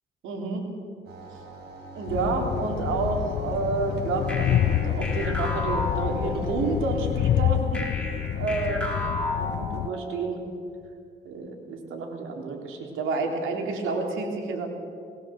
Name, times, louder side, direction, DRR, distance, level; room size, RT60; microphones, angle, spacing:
voice 1, 0.2-0.7 2.0-7.8 8.4-8.9 9.3-10.4 11.3-14.7, right 3 dB, 90° right, 2 dB, 3.4 m, -29 dB
sound 1, 1.1-7.0, right 1 dB, 55° right, 6.2 m, -41 dB
Train, 2.1-9.9, left 11 dB, 60° left, 0.5 m, -27 dB
sound 2, 4.3-6.8 7.7-10.3, left 2 dB, 5° left, 4.3 m, -33 dB
20.0 x 18.0 x 7.6 m, 2.4 s
cardioid pair, 90°, 20 cm